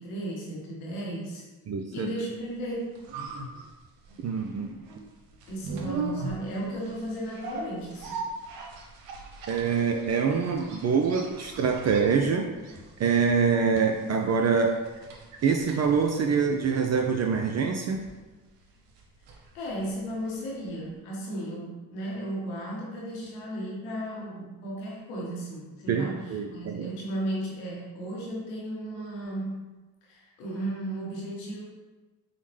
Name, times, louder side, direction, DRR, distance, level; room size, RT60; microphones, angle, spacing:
voice 1, 0.0-1.4 1.9-2.9 5.5-8.2 19.5-29.7 30.1-31.6, right 1 dB, 90° left, -4 dB, 1.0 m, -35 dB
voice 2, 1.7-2.3 4.2-4.8 9.5-14.8 15.4-18.0 25.9-26.9, right 5 dB, 40° right, 3 dB, 0.4 m, -25 dB
sound 1, 2.6-20.6 20.8-20.9, right 3 dB, 85° right, 0.6 m, -41 dB
4.9 x 2.1 x 3.2 m, 1.2 s
hypercardioid pair, 45°, 41 cm